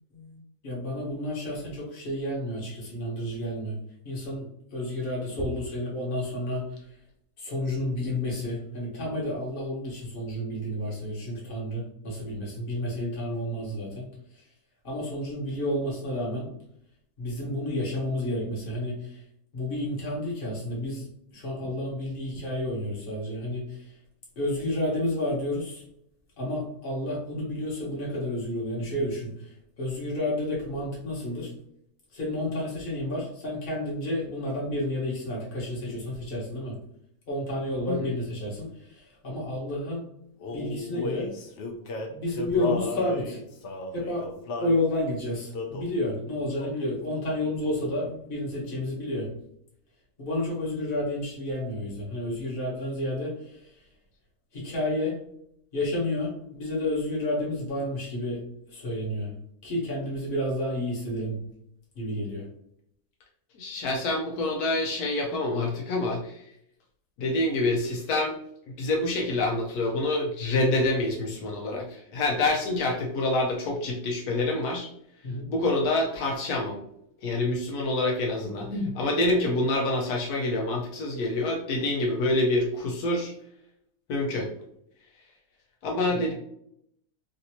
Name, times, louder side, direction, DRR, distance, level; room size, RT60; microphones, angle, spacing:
voice 1, 0.0-3.8 4.0-6.9 7.4-14.1 14.3-14.4 14.8-16.5 17.2-19.2 19.5-23.9 24.4-25.8 26.4-31.5 32.1-36.8 37.3-40.1 40.5-41.3 42.1-43.4 43.9-44.3 44.6-49.3 50.2-53.8 54.5-55.2 55.7-58.4 58.7-59.3 59.6-61.4 61.9-62.5 75.2-75.5 78.7-78.9 86.0-86.3, left 1 dB, 40° left, -3 dB, 1.2 m, -31 dB
Male singing, 40.4-44.8 45.5-46.0 46.6-46.9 47.1-48.1, left 3 dB, 60° left, 0.8 m, -35 dB
voice 2, 63.6-66.4 67.2-68.4 68.8-74.9 75.5-76.8 77.2-78.7 79.0-83.3 84.1-84.5 85.8-86.3, left 2 dB, 80° left, -1 dB, 1.1 m, -27 dB
3.3 x 2.6 x 2.8 m, 0.73 s
omnidirectional pair, 1.6 m